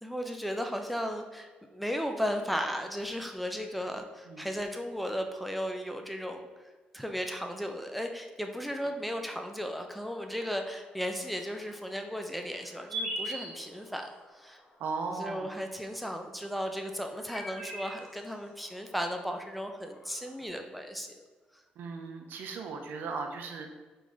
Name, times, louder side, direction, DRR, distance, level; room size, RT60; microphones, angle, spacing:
voice 1, 0.0-6.5 6.9-14.6 15.1-21.2, equal, ahead, 4 dB, 0.3 m, -35 dB
sound 1, 9.7-20.5, right 1 dB, 45° left, 1.4 m, -44 dB
voice 2, 14.8-15.5 21.8-23.7, right 4 dB, 75° right, 4 dB, 0.5 m, -37 dB
3.8 x 3.1 x 3.5 m, 1.3 s
cardioid pair, 170°, 3 cm